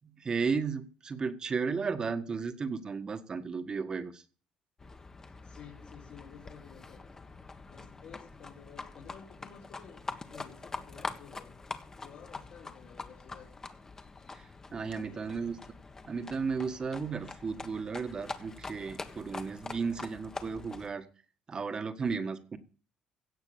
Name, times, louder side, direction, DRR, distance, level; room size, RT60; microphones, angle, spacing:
voice 1, 0.0-4.2 14.3-15.6 16.1-21.1 21.5-22.6, right 5 dB, 35° right, 10 dB, 1.6 m, -34 dB
Livestock farm animals working animals, 4.8-20.9, left 3 dB, 25° left, 1.5 m, -44 dB
voice 2, 5.4-7.1 7.7-13.5 15.0-15.5, left 7 dB, 65° left, -4 dB, 4.3 m, -53 dB
16.5 x 5.8 x 8.6 m, 0.40 s
cardioid pair, 100°, 2 cm